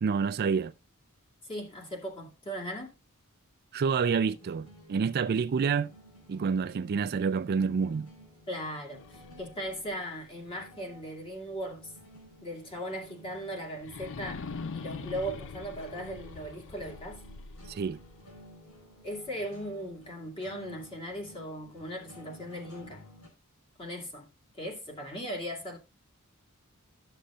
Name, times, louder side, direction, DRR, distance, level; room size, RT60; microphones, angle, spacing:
voice 1, 0.0-0.7 3.7-5.9 6.3-8.1 17.7-18.0, right 5 dB, 45° right, 0.4 m, -28 dB
voice 2, 1.5-2.9 8.5-11.9 12.4-14.5 14.7-17.2 19.0-23.0 23.8-24.3 24.6-25.8, equal, 25° left, 2.3 m, -38 dB
sound 1, 3.8-23.3, equal, 85° left, 4.4 m, -54 dB
sound 2, 8.9-11.8 12.3-12.4 13.8-18.8, left 4 dB, 60° left, 0.5 m, -44 dB
13.0 x 6.6 x 2.5 m
head